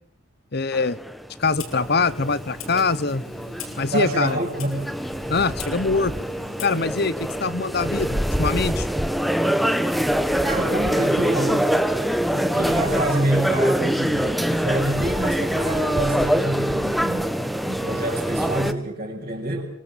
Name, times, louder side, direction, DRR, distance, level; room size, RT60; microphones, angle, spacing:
voice 1, 0.5-1.0 1.4-3.2 3.8-4.4 5.3-6.1 6.6-8.9, left 4 dB, 50° left, 17 dB, 1.1 m, -23 dB
sound 1, 0.7-18.7, equal, ahead, 1.2 m, -24 dB
Clock, 1.4-7.0, left 2 dB, 80° left, 6.0 m, -40 dB
voice 2, 3.9-4.8 10.4-11.7 12.3-19.6, right 1 dB, 35° right, -5 dB, 7.0 m, -27 dB
27.0 x 24.5 x 7.5 m, 0.64 s
head